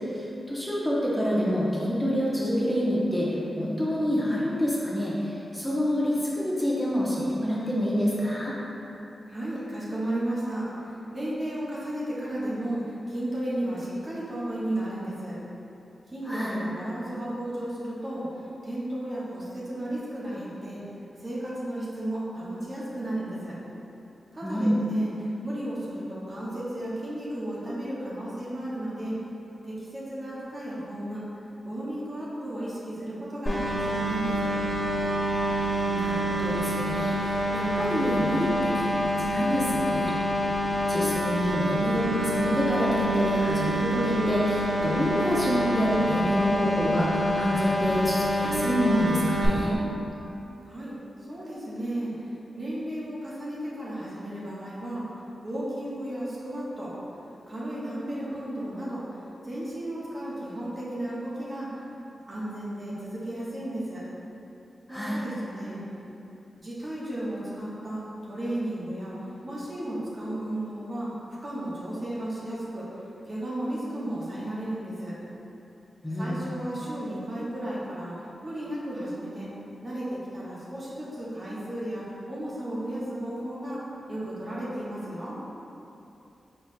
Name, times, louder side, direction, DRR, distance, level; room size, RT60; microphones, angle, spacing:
voice 1, 0.1-3.3 3.6-8.5 16.3-16.6 24.4-24.8 35.9-40.1 40.9-49.8 64.9-65.2 76.0-76.4, equal, 5° left, -7 dB, 0.8 m, -27 dB
voice 2, 9.3-10.7 11.1-15.4 16.1-18.3 18.6-20.8 21.2-23.5 24.3-25.1 25.4-29.2 29.6-31.2 31.6-34.5 50.6-50.9 51.3-52.1 52.5-55.1 55.4-56.9 57.5-59.0 59.4-61.7 62.3-64.0 64.9-65.8 66.6-69.2 69.4-71.1 71.4-72.9 73.3-75.1 76.2-78.1 78.4-79.5 79.8-83.8 84.1-85.4, right 1 dB, 45° right, -8 dB, 1.1 m, -34 dB
sound 1, 33.5-49.5, equal, 35° left, 1.2 m, -27 dB
4.4 x 4.2 x 2.2 m, 2.9 s
cardioid pair, 50°, 0 cm